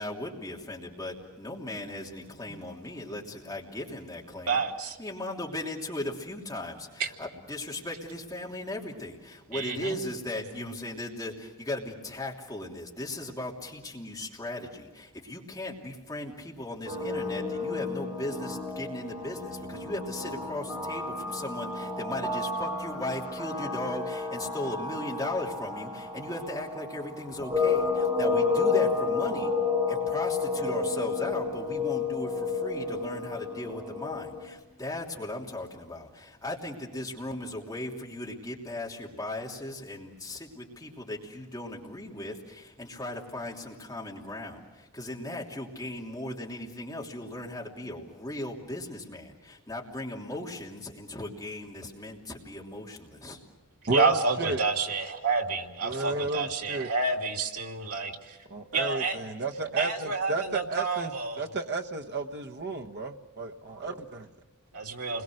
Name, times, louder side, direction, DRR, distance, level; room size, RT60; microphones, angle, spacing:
voice 1, 0.0-4.6 5.0-29.5 29.9-53.4, left 1 dB, 15° left, -2 dB, 3.1 m, -37 dB
voice 2, 4.5-5.0 7.0-7.1 9.5-10.0 53.8-58.4 58.7-59.2 59.8-61.5 64.7-65.2, right 4 dB, 85° right, 0 dB, 2.9 m, -29 dB
sound 1, 16.9-34.4, left 4 dB, 20° right, 3.9 m, -31 dB
voice 3, 53.9-54.6 55.8-56.9 58.5-61.1 61.4-64.3, right 3 dB, 50° right, 3 dB, 1.1 m, -33 dB
29.0 x 22.0 x 6.4 m, 1.1 s
head